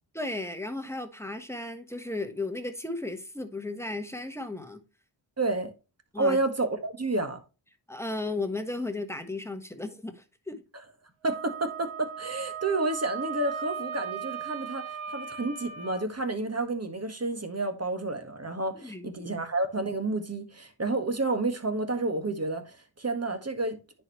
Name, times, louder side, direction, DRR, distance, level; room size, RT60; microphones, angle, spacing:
voice 1, 0.1-4.8 6.1-6.4 7.9-10.6 18.8-19.1, left 2 dB, 5° left, 1.3 m, -35 dB
voice 2, 5.4-5.7 6.2-7.4 11.2-23.8, right 2 dB, 30° right, 1.7 m, -30 dB
Wind instrument woodwind instrument, 11.3-16.0, right 7 dB, 85° right, 0.8 m, -37 dB
10.0 x 4.6 x 3.1 m
cardioid pair, 45°, 46 cm